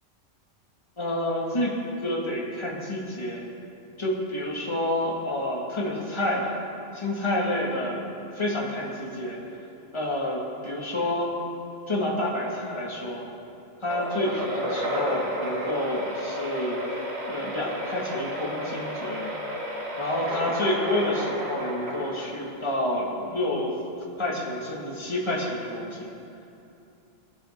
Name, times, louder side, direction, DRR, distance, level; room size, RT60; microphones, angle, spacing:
voice 1, 1.0-1.8 2.0-3.4 4.0-6.6 6.9-8.0 8.3-9.4 9.9-11.3 11.9-13.2 13.8-16.8 17.3-19.3 20.0-23.8 24.2-26.1, left 1 dB, 20° left, -3 dB, 2.0 m, -29 dB
sound 1, 13.9-22.7, equal, 55° right, 2.0 m, -32 dB
21.0 x 7.6 x 5.2 m, 2.7 s
omnidirectional pair, 1.3 m